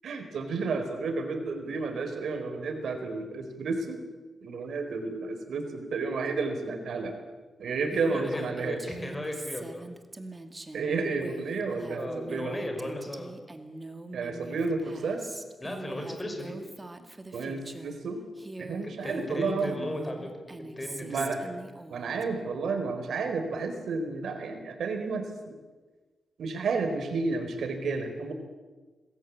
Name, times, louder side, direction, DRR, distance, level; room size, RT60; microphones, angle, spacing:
voice 1, 0.0-4.0 4.4-7.1 7.6-8.8 10.7-12.5 14.1-15.3 17.3-18.2 18.6-19.7 21.0-21.4 21.9-25.5 26.4-28.3, right 4 dB, 85° right, 6 dB, 4.5 m, -31 dB
Female speech woman speaking, 7.9-18.0 18.4-22.2, right 2 dB, 20° right, 2.3 m, -43 dB
voice 2, 8.1-9.9 11.9-13.3 15.6-16.6 18.8-20.5 20.8-21.5, left 1 dB, 20° left, 4 dB, 6.2 m, -36 dB
27.0 x 20.5 x 8.6 m, 1.3 s
wide cardioid pair, 110°, 0 cm